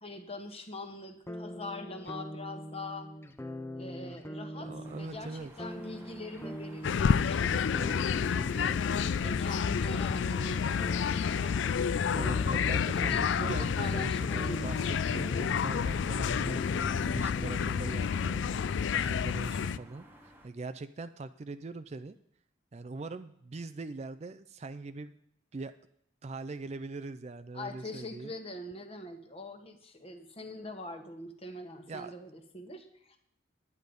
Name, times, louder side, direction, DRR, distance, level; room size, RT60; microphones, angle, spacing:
voice 1, 0.0-3.1 3.8-8.0 8.3-8.8 9.2-10.7 11.0-14.6 17.3-17.5 27.5-33.2, left 1 dB, 30° left, 6 dB, 1.2 m, -43 dB
sound 1, 1.3-19.1, left 1 dB, 10° left, 0.6 m, -43 dB
voice 2, 4.6-5.5 8.3-8.5 12.1-14.8 15.1-18.6 19.0-22.2 22.7-25.1 25.5-25.7 26.2-28.3 31.9-32.1, right 3 dB, 35° right, 10 dB, 0.4 m, -42 dB
sound 2, 4.8-20.5, right 1 dB, 10° right, 1.2 m, -55 dB
sound 3, 6.8-19.8, left 6 dB, 65° left, 0.4 m, -29 dB
10.5 x 9.6 x 5.2 m, 0.74 s
head